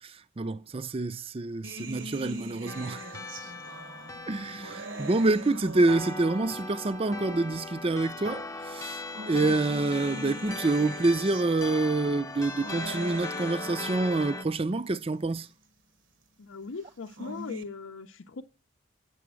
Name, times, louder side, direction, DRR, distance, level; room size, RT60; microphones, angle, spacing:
voice 1, 0.0-3.2 4.3-15.5, right 2 dB, 30° right, 0.5 m, -27 dB
sound 1, 1.6-6.7 7.6-7.7 8.8-14.7 16.9-17.6, right 1 dB, 70° right, 1.2 m, -42 dB
sound 2, 2.7-14.4, left 3 dB, 15° left, 0.6 m, -39 dB
voice 2, 16.4-18.4, left 4 dB, 75° left, 0.6 m, -39 dB
9.4 x 6.9 x 6.2 m
head